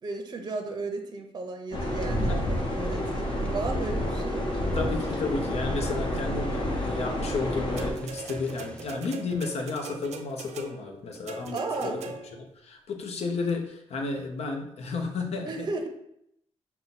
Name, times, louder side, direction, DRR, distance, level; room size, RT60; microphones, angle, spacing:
voice 1, 0.0-4.5 11.5-12.0 15.4-15.9, right 3 dB, 35° right, 4 dB, 0.6 m, -34 dB
sound 1, 1.7-7.9, equal, 40° left, 0.9 m, -29 dB
sound 2, 1.8-8.9, left 2 dB, 10° left, 0.5 m, -44 dB
voice 2, 4.7-12.0 12.6-15.5, left 4 dB, 70° left, 3 dB, 0.8 m, -32 dB
sound 3, 7.8-12.5 13.5-13.6, right 5 dB, 85° right, 0.5 m, -41 dB
5.7 x 2.2 x 4.1 m, 0.75 s
cardioid pair, 100°, 11 cm